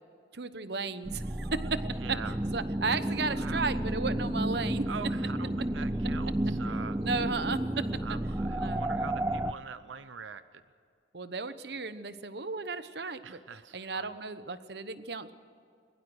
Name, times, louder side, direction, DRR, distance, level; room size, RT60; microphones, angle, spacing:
voice 1, 0.3-2.2 2.5-4.8 7.0-8.2 8.6-8.8 11.1-13.4 13.7-15.3, right 4 dB, 60° right, 12 dB, 1.0 m, -34 dB
sound 1, 1.0-9.5, right 1 dB, 15° right, 0.5 m, -32 dB
voice 2, 1.9-2.4 3.4-3.7 4.9-7.0 8.0-10.6 13.2-14.1, right 6 dB, 90° right, 12 dB, 0.7 m, -43 dB
22.0 x 21.5 x 6.3 m, 2.3 s
head